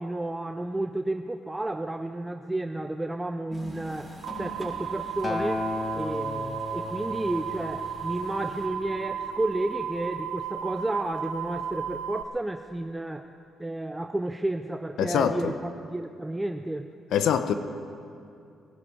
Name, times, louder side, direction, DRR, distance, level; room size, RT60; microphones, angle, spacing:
voice 1, 0.0-5.7 5.9-13.3 13.6-16.9, right 1 dB, 10° right, 7 dB, 0.5 m, -32 dB
sound 1, 3.5-8.7, left 1 dB, 10° left, 4.9 m, -46 dB
sound 2, 4.2-12.2, right 8 dB, 85° right, 0.7 m, -35 dB
Acoustic guitar, 5.2-9.5 10.4-10.5, left 3 dB, 30° left, 0.7 m, -35 dB
voice 2, 15.0-15.5 17.1-17.5, left 8 dB, 75° left, 10 dB, 0.8 m, -24 dB
21.5 x 12.0 x 4.8 m, 2.5 s
cardioid pair, 90°, 0 cm